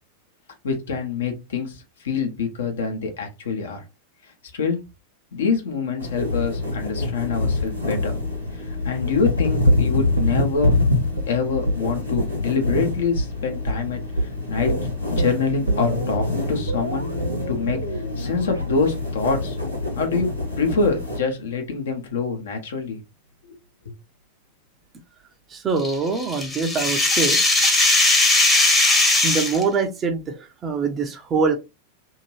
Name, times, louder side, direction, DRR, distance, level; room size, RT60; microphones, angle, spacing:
voice 1, 0.6-3.8 4.5-4.8 5.3-8.1 8.5-10.7 11.3-14.7 15.1-17.1 17.5-19.6 19.9-23.0 23.4-23.6 23.8-23.9, left 5 dB, 60° left, 4 dB, 0.9 m, -25 dB
sound 1, 6.0-21.2, left 3 dB, 90° left, 1.1 m, -26 dB
sound 2, 9.6-11.3 11.7-11.9 12.2-12.3 12.7-12.8 13.2-13.3 13.7-13.9 14.2-14.3 14.7-20.7 21.0-21.1, right 1 dB, 90° right, 0.6 m, -27 dB
voice 2, 25.5-27.4 29.2-31.5, right 4 dB, 25° right, 6 dB, 0.6 m, -24 dB
sound 3, 25.8-29.6, left 2 dB, 15° left, 0.9 m, -18 dB
2.8 x 2.5 x 3.0 m, 0.25 s
figure-of-eight pair, 90°, 0 cm